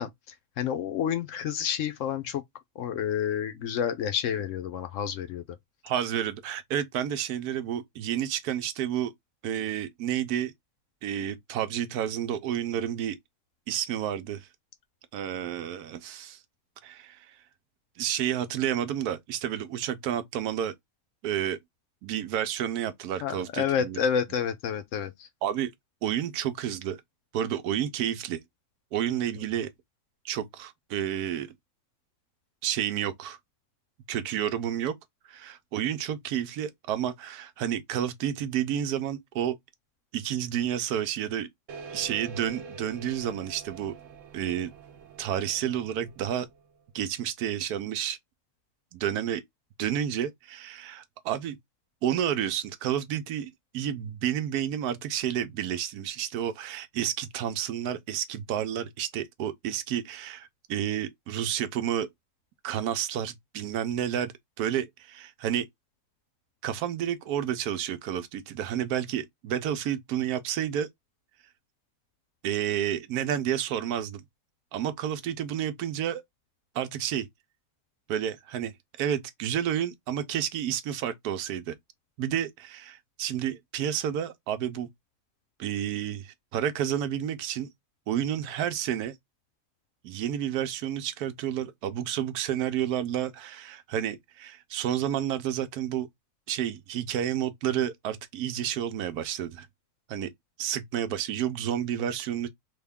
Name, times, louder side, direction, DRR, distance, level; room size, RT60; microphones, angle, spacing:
voice 1, 0.0-2.4 2.8-5.4 23.2-25.3 29.6-29.7, left 8 dB, 65° left, 0.8 m, -29 dB
voice 2, 5.8-9.1 9.4-10.5 11.0-13.2 13.7-14.5 15.1-16.4 16.8-17.3 18.0-20.7 21.2-21.6 22.0-24.0 25.4-25.7 26.0-27.0 27.3-28.4 28.9-29.7 30.2-31.5 32.6-33.4 34.1-35.0 35.3-39.6 40.1-41.5 41.9-43.9 44.3-44.7 45.2-46.5 46.9-48.2 48.9-49.4 49.8-51.6 52.0-62.1 62.6-65.7 66.6-70.9 72.4-74.2 74.7-76.2 76.7-77.3 78.1-78.7 79.0-81.7 82.2-84.9 85.6-87.7 88.1-89.1 90.0-96.1 96.5-99.7 100.1-100.3 100.6-102.5, right 10 dB, 80° right, 1.1 m, -30 dB
sound 1, 41.7-46.8, right 5 dB, 60° right, 1.0 m, -45 dB
3.5 x 2.3 x 3.4 m
omnidirectional pair, 1.7 m